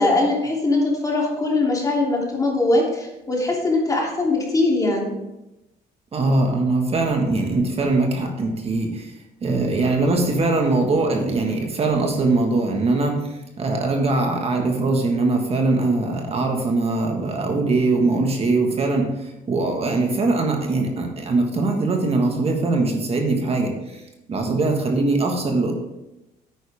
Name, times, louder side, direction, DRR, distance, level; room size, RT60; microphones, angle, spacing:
voice 1, 0.0-5.1, left 2 dB, 20° left, -2 dB, 3.1 m, -21 dB
voice 2, 6.1-9.1 9.4-24.0 24.3-25.7, right 3 dB, 35° right, 2 dB, 1.7 m, -21 dB
10.0 x 9.3 x 3.6 m, 0.94 s
cardioid pair, 110°, 17 cm